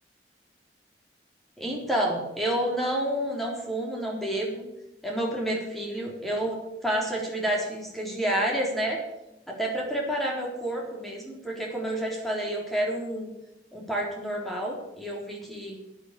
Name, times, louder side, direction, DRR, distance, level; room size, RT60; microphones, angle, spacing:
voice 1, 1.6-4.6 5.0-9.0 9.5-13.3 13.7-15.8, right 1 dB, ahead, -2 dB, 3.8 m, -29 dB
10.5 x 10.0 x 8.3 m, 0.93 s
head